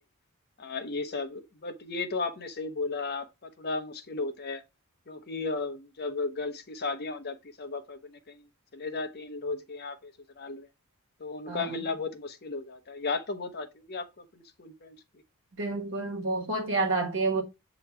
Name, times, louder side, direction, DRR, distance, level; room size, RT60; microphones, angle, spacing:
voice 1, 0.6-4.6 5.1-8.4 8.7-10.7 11.2-15.0, left 3 dB, 45° left, 0.8 m, -35 dB
voice 2, 15.6-17.4, right 3 dB, 55° right, 1.5 m, -29 dB
7.7 x 3.0 x 4.6 m
head